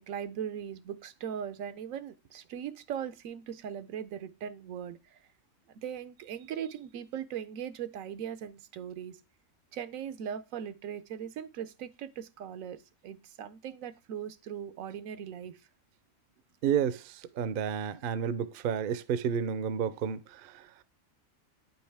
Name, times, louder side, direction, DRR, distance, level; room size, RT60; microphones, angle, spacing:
voice 1, 0.0-5.2 5.8-9.2 9.7-15.6, right 9 dB, 85° right, 1.0 m, -39 dB
voice 2, 16.6-20.5, right 8 dB, 60° right, 0.6 m, -31 dB
9.1 x 5.5 x 3.4 m
omnidirectional pair, 1.4 m